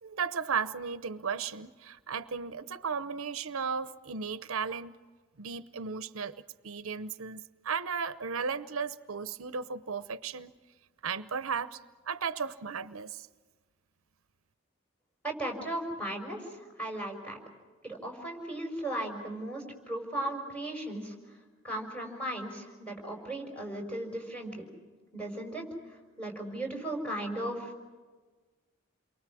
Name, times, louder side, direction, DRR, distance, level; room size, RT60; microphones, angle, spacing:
voice 1, 0.0-4.9 5.4-10.5 11.0-11.8 12.0-13.3, right 6 dB, 85° right, 14 dB, 0.8 m, -35 dB
voice 2, 15.2-17.4 17.8-21.1 21.6-24.7 25.1-25.6 26.2-27.8, right 1 dB, 5° left, 1 dB, 5.5 m, -36 dB
29.0 x 23.5 x 6.2 m, 1.4 s
head